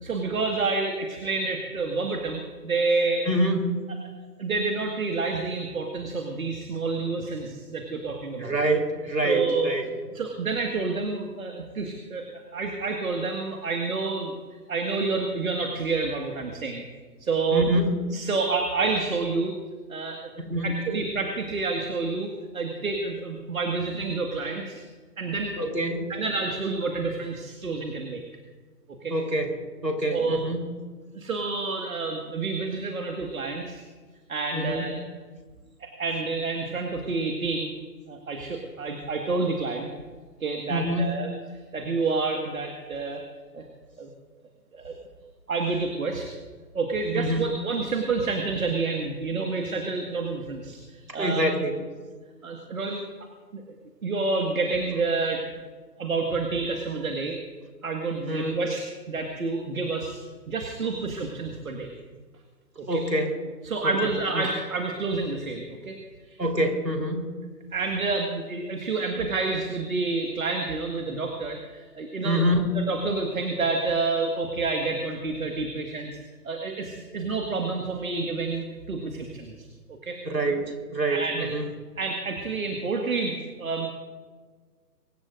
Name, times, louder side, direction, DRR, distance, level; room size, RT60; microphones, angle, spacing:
voice 1, 0.0-3.3 4.4-8.5 9.2-9.7 10.1-12.2 12.5-14.3 14.7-16.8 17.2-17.6 18.1-19.5 19.9-20.2 20.6-24.8 25.2-25.5 26.1-28.2 29.0-29.1 30.1-30.4 31.2-33.8 34.3-35.0 35.8-37.7 38.1-39.9 40.4-41.3 41.7-43.2 43.5-43.6 44.0-44.1 44.7-44.9 45.5-46.3 46.7-51.5 52.4-53.0 53.5-53.6 54.0-55.4 56.0-57.4 57.8-60.2 60.5-61.9 62.8-63.0 63.6-66.0 66.3-66.4 67.7-72.5 72.8-76.1 76.4-79.5 79.9-80.2 81.1-81.5 82.0-83.9, right 3 dB, 55° right, 3 dB, 1.9 m, -28 dB
voice 2, 3.3-3.8 8.4-9.9 17.5-18.0 20.5-20.7 25.6-26.1 29.1-30.6 34.5-35.0 40.7-41.2 47.1-47.4 51.1-51.8 58.3-58.5 62.9-63.4 63.8-64.5 66.4-67.3 72.2-72.7 80.2-81.6, right 1 dB, 80° right, 2 dB, 3.9 m, -26 dB
24.0 x 20.5 x 2.6 m, 1.4 s
figure-of-eight pair, 140°, 49 cm